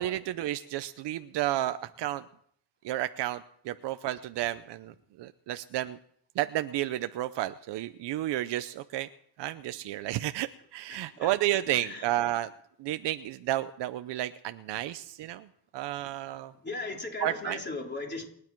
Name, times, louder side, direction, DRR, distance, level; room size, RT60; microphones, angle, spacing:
voice 1, 0.0-2.2 2.8-6.0 6.4-9.1 9.4-12.5 12.8-15.5 15.7-16.5 17.2-17.6, right 14 dB, 90° right, 0.7 m, -32 dB
voice 2, 10.9-12.1 16.6-18.2, left 3 dB, 25° left, 3.6 m, -38 dB
29.0 x 9.8 x 4.6 m
cardioid pair, 95°, 41 cm